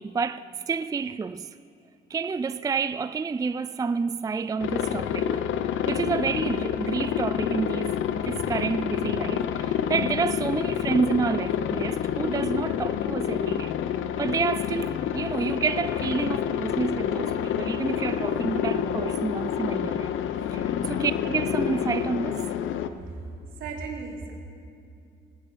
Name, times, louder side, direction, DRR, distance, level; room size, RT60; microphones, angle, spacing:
voice 1, 0.0-1.5 2.1-5.4 5.9-13.8 14.2-20.1 20.5-22.5, right 5 dB, 20° right, 0.4 m, -29 dB
Aircraft, 4.6-22.9, left 9 dB, 80° left, 0.8 m, -28 dB
voice 2, 23.5-24.3, right 4 dB, 80° right, 3.2 m, -36 dB
19.5 x 7.7 x 9.1 m
cardioid pair, 90°, 20 cm